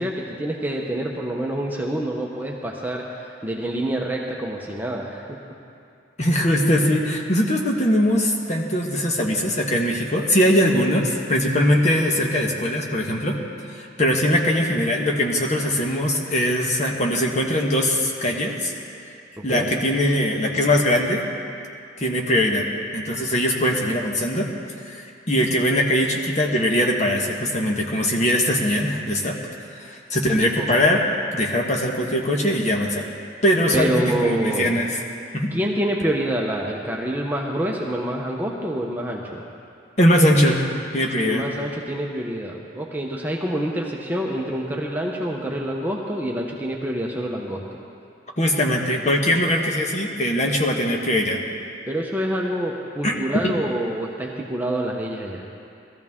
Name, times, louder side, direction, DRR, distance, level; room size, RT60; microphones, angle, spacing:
voice 1, 0.0-5.2 19.4-19.7 30.6-30.7 33.7-34.7 35.5-39.4 41.2-47.6 51.9-55.4, right 1 dB, 10° right, -1 dB, 0.8 m, -27 dB
voice 2, 6.2-13.3 13.7-18.7 19.4-21.2 22.0-22.7 22.9-24.5 24.8-29.4 29.7-31.0 31.3-33.0 33.4-34.9 35.3-35.5 40.0-40.6 40.9-41.4 48.4-51.4 53.0-53.1, equal, 35° left, 0 dB, 1.3 m, -21 dB
18.5 x 14.0 x 3.6 m, 2.5 s
head